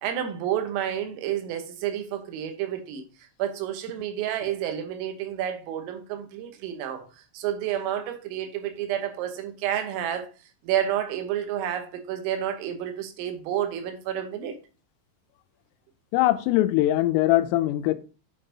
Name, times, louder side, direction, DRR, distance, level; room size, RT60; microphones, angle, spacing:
voice 1, 0.0-3.1 3.4-10.3 10.6-14.6, right 10 dB, 90° right, 3.7 m, -30 dB
voice 2, 16.1-17.9, left 15 dB, 85° left, 3.2 m, -21 dB
9.4 x 5.5 x 2.7 m
omnidirectional pair, 5.8 m